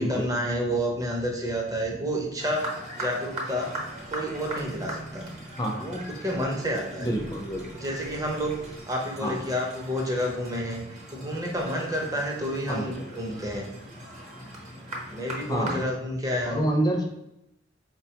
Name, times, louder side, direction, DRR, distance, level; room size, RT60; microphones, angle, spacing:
voice 1, 0.0-3.7 4.1-5.3 5.8-7.1 7.8-10.8 11.1-13.7 15.1-16.7, equal, 20° right, -1 dB, 0.6 m, -30 dB
sound 1, 2.4-15.8, right 1 dB, 40° right, 0.9 m, -40 dB
sound 2, 3.8-8.8, right 3 dB, 55° right, 0.3 m, -46 dB
voice 2, 5.6-5.9 7.0-7.6 9.2-9.4 12.7-12.9 15.5-15.8 16.5-17.1, right 1 dB, 20° left, 2 dB, 0.5 m, -27 dB
4.5 x 2.2 x 2.8 m, 0.84 s
head